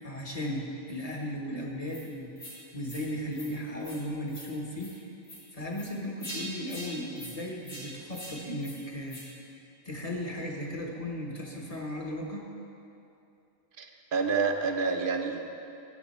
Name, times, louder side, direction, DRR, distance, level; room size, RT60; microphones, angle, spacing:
voice 1, 0.0-2.3 2.7-4.9 5.5-9.2 9.8-12.5, left 1 dB, 35° left, -1 dB, 1.2 m, -36 dB
sound 1, 1.9-2.0 2.4-2.6 2.8-3.0 3.3-3.5 3.8-4.0 4.3-4.5 4.8-4.9 5.2-5.4 5.7-5.9 6.2-6.4 6.7-6.9 7.2-7.3 7.6-7.8 8.1-8.3 8.6-8.8 9.1-9.2, equal, 80° left, 2.7 m, -43 dB
voice 2, 13.8-15.4, right 4 dB, 55° right, 4 dB, 0.9 m, -28 dB
13.5 x 8.1 x 4.3 m, 2.8 s
omnidirectional pair, 1.2 m